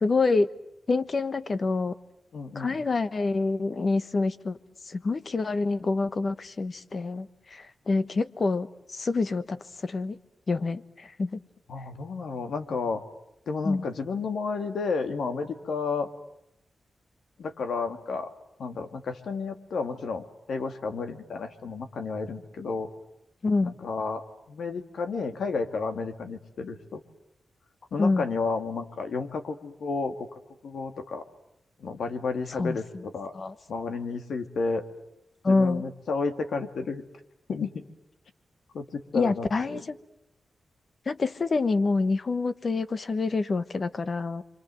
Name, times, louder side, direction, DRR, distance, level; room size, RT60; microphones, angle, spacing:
voice 1, 0.0-0.5 0.9-1.9 2.5-4.6 4.9-8.7 8.9-10.2 10.5-11.4 13.6-13.8 23.4-23.7 28.0-28.3 32.6-33.0 33.3-33.5 35.4-35.8 39.1-40.0 41.1-44.4, left 3 dB, 45° left, 13 dB, 1.2 m, -27 dB
voice 2, 2.3-2.8 11.7-13.0 13.5-16.1 17.4-18.3 18.6-22.9 23.6-24.2 24.5-27.0 27.9-30.3 30.6-31.2 31.8-33.3 33.7-34.8 35.5-37.0 37.5-37.7 38.7-39.8, left 4 dB, 80° left, 7 dB, 2.4 m, -31 dB
29.0 x 25.5 x 7.8 m, 0.84 s
wide cardioid pair, 120°, 0 cm